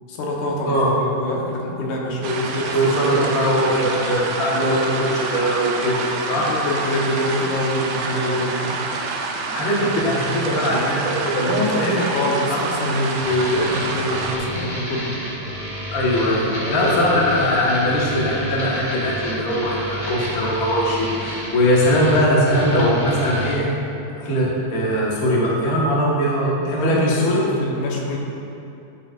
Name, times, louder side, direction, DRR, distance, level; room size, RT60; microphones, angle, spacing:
voice 1, 0.1-3.8 6.3-8.8 11.5-15.2 16.6-17.2 26.6-28.2, left 1 dB, 70° left, -2 dB, 2.3 m, -25 dB
sound 1, 2.2-14.4, right 4 dB, 80° right, 1.5 m, -28 dB
voice 2, 2.7-6.5 9.5-11.9 12.5-12.6 15.9-23.7 24.2-27.5, equal, 85° left, -5 dB, 0.7 m, -20 dB
sound 2, 13.2-23.5, equal, 30° left, 1.6 m, -31 dB
12.0 x 7.6 x 2.5 m, 2.7 s
omnidirectional pair, 3.9 m